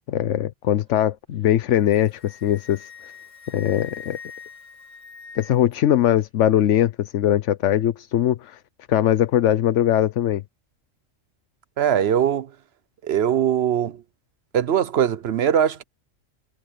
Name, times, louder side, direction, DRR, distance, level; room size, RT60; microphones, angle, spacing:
voice 1, 0.1-2.9 3.5-4.2 5.4-8.6 8.9-10.4, left 11 dB, 70° left, 1.0 m, -21 dB
Wind instrument woodwind instrument, 1.8-5.7, left 6 dB, 75° right, 6.1 m, -43 dB
voice 2, 11.8-12.5 13.0-14.0 14.5-15.8, right 9 dB, 55° right, 1.0 m, -21 dB
omnidirectional pair, 1.3 m